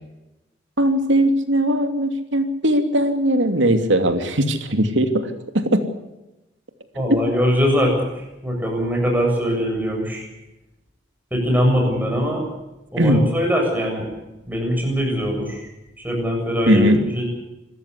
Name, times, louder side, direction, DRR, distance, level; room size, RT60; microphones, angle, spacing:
voice 1, 0.8-5.3 5.5-5.8 13.0-13.3 16.7-17.0, right 1 dB, 90° right, 7 dB, 2.8 m, -19 dB
voice 2, 6.9-10.3 11.3-12.4 12.9-14.1 14.5-15.7 16.0-17.3, equal, 10° right, 1 dB, 7.3 m, -22 dB
27.0 x 14.5 x 8.2 m, 0.98 s
head